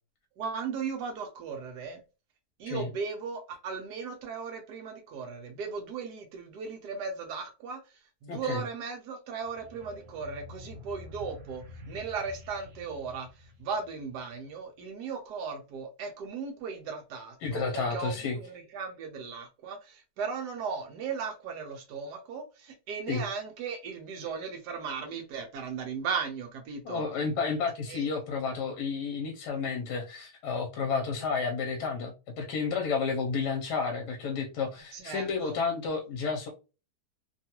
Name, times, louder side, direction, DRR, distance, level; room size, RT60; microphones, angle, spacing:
voice 1, 0.4-2.0 2.6-13.3 13.6-27.0 27.9-28.1 34.9-35.6, right 5 dB, 80° right, 1.2 m, -37 dB
voice 2, 8.3-8.6 17.4-18.4 23.1-23.2 26.8-36.5, left 5 dB, 85° left, 1.2 m, -31 dB
sound 1, 9.4-14.4, left 2 dB, 55° right, 0.8 m, -48 dB
3.0 x 2.3 x 2.8 m
omnidirectional pair, 1.7 m